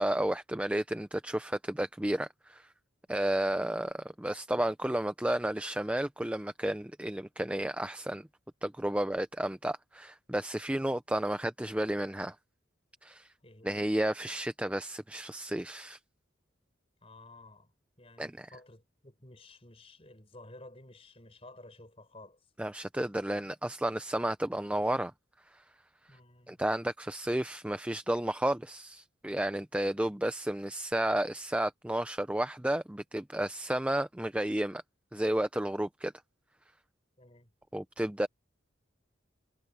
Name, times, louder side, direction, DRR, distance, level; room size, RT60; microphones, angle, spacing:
voice 1, 0.0-2.7 3.1-8.3 8.6-12.4 13.0-13.3 13.6-16.0 18.2-18.5 22.6-25.1 26.5-34.8 35.1-36.1 37.7-38.3, right 1 dB, 5° right, 0.5 m, -32 dB
voice 2, 13.4-13.9 17.0-17.7 18.0-22.4 26.1-26.6 37.2-37.5, left 2 dB, 30° left, 5.3 m, -53 dB
head